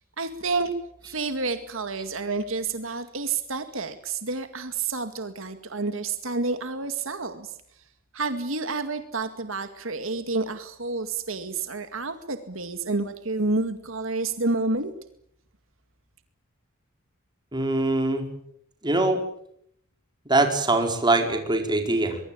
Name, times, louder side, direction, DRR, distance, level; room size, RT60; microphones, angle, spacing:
voice 1, 0.2-0.7 1.0-7.5 8.1-14.9, right 3 dB, 70° right, 9 dB, 2.1 m, -29 dB
voice 2, 17.5-18.2 18.8-19.2 20.3-22.2, right 2 dB, 20° right, 5 dB, 4.6 m, -23 dB
24.5 x 23.0 x 9.0 m, 0.71 s
head